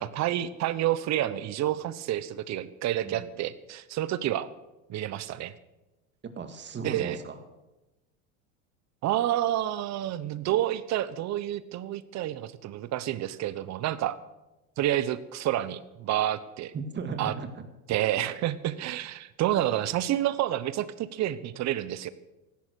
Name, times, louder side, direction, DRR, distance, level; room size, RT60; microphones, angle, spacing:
voice 1, 0.0-4.5 4.9-5.5 6.8-7.2 9.0-14.2 14.8-16.7 17.2-17.3 17.9-22.1, right 12 dB, 40° right, 16 dB, 1.1 m, -29 dB
voice 2, 6.4-7.3 16.7-17.6, right 5 dB, 25° right, 7 dB, 2.2 m, -36 dB
16.0 x 11.5 x 6.5 m, 1.0 s
supercardioid pair, 110°, 40 cm